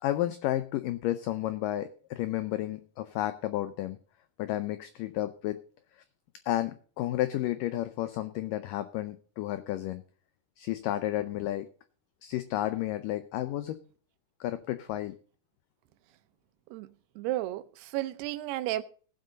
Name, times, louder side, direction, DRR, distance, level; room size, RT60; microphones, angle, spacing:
voice 1, 0.0-4.0 4.4-5.6 6.4-10.0 10.6-11.7 12.2-13.8 14.4-15.2, left 14 dB, 90° left, 1.9 m, -32 dB
voice 2, 16.7-18.8, right 15 dB, 85° right, 2.7 m, -33 dB
18.0 x 7.7 x 3.9 m
omnidirectional pair, 4.6 m